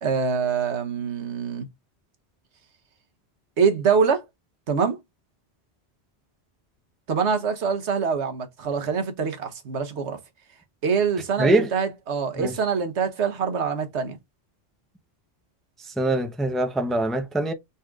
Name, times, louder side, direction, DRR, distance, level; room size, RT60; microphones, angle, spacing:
voice 1, 0.0-1.7 3.6-4.2 4.7-5.0 7.1-10.2 10.8-14.2, right 6 dB, 85° right, 1.3 m, -24 dB
voice 2, 11.4-11.7 12.4-12.5 16.0-17.5, right 2 dB, ahead, 0.6 m, -23 dB
4.7 x 4.1 x 2.4 m
omnidirectional pair, 1.1 m